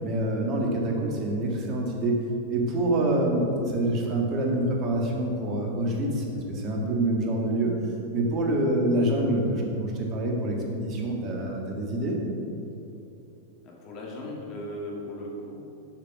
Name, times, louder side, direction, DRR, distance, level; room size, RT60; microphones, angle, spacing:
voice 1, 0.0-2.2 2.5-7.7 8.1-12.2, right 1 dB, 35° right, 0 dB, 1.6 m, -26 dB
voice 2, 13.6-15.6, left 1 dB, 40° left, -2 dB, 1.9 m, -37 dB
7.4 x 5.9 x 4.8 m, 2.8 s
figure-of-eight pair, 95°, 0 cm